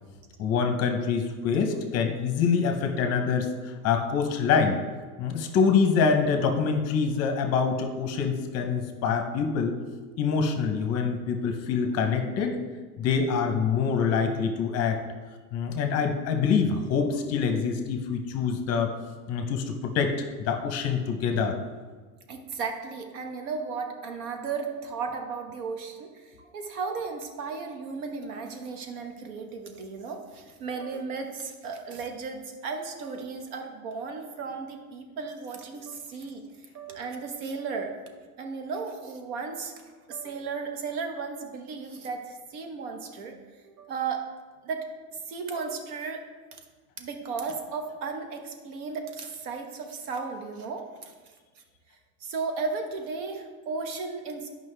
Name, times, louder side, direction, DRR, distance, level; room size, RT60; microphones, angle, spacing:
voice 1, 0.4-4.8 5.2-9.7 10.2-12.6 13.0-15.0 15.5-18.9 19.3-21.6, left 5 dB, 35° left, 5 dB, 0.7 m, -25 dB
voice 2, 22.3-36.4 36.7-37.9 38.4-43.4 43.6-44.2 44.6-44.9 45.3-46.2 46.5-46.6 47.0-51.1 52.2-54.5, right 4 dB, 75° right, 4 dB, 1.3 m, -35 dB
9.3 x 5.3 x 3.3 m, 1.4 s
supercardioid pair, 150°, 45 cm